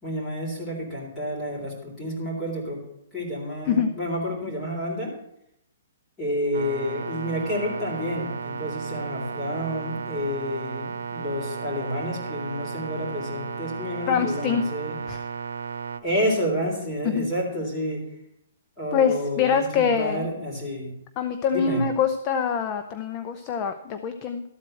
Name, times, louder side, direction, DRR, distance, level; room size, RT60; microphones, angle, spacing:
voice 1, 0.0-2.8 3.1-5.1 6.2-14.9 16.0-18.0 18.8-20.9 21.5-21.8, equal, 10° left, -3 dB, 3.4 m, -29 dB
sound 1, 6.5-16.0, right 6 dB, 85° right, 0.8 m, -34 dB
voice 2, 14.1-14.6 15.1-15.2 17.0-17.3 18.9-20.3 21.2-24.4, left 6 dB, 25° left, 8 dB, 0.6 m, -24 dB
13.0 x 4.4 x 7.7 m, 0.76 s
hypercardioid pair, 160°, 0 cm